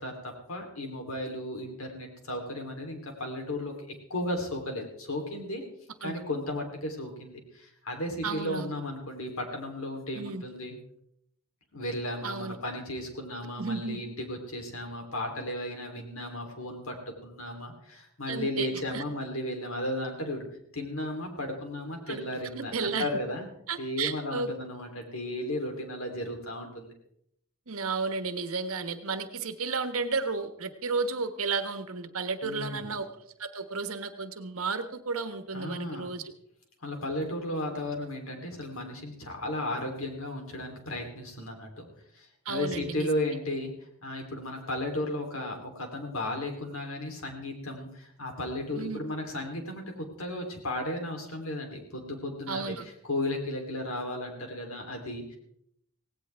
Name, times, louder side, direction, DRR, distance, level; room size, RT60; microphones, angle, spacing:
voice 1, 0.0-5.6 6.0-10.8 11.7-17.0 17.2-20.5 20.7-23.5 23.8-26.9 32.4-32.9 35.5-36.1 36.8-41.8 42.1-43.7 44.0-55.4, left 1 dB, 65° left, 3 dB, 3.5 m, -35 dB
voice 2, 8.2-8.7 10.1-10.4 12.2-12.6 13.6-14.0 18.3-19.0 22.1-22.2 22.5-23.1 23.7-24.5 27.7-33.1 33.4-36.3 42.4-43.1 48.7-49.0 52.5-52.9, right 4 dB, 70° right, 9 dB, 1.4 m, -33 dB
17.5 x 17.0 x 3.5 m, 0.73 s
head